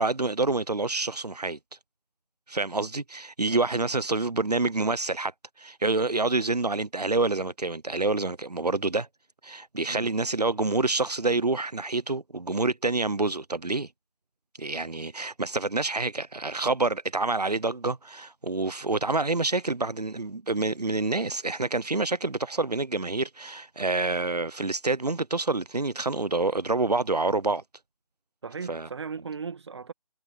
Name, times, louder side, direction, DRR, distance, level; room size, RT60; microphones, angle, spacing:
voice 1, 0.0-1.6 2.5-9.1 9.4-13.9 14.6-27.6 28.7-28.9, right 3 dB, 90° right, 0.8 m, -27 dB
voice 2, 28.4-29.9, right 5 dB, 45° right, 1.8 m, -37 dB
figure-of-eight pair, 155°, 20 cm